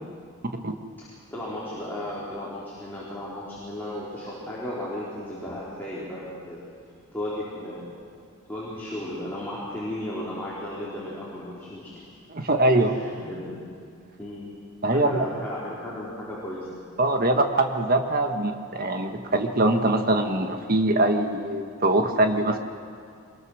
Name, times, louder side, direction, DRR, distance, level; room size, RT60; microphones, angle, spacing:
voice 1, 1.0-6.6 7.1-7.9 8.5-12.1 12.7-13.6 14.2-14.5 14.9-16.8, left 1 dB, 10° left, -8 dB, 4.1 m, -35 dB
voice 2, 12.3-12.9 14.8-15.3 17.0-22.6, right 2 dB, 40° right, 5 dB, 1.5 m, -23 dB
24.5 x 22.0 x 6.5 m, 2.2 s
head